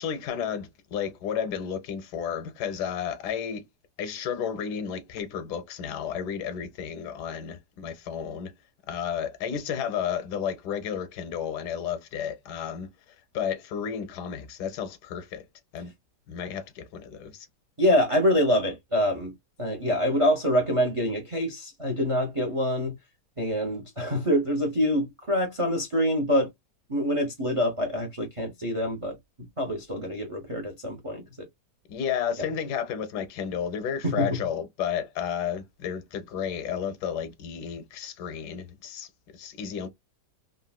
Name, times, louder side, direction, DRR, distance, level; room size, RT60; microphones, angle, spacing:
voice 1, 0.0-3.7 4.0-8.5 8.9-12.9 13.3-15.5 15.7-15.9 16.3-17.5 31.9-39.9, left 8 dB, 75° left, 1.1 m, -32 dB
voice 2, 17.8-19.3 19.6-22.9 23.4-26.5 26.9-29.2 29.6-31.5 34.0-34.3, equal, 55° right, 0.3 m, -25 dB
3.7 x 2.1 x 2.2 m
omnidirectional pair, 1.8 m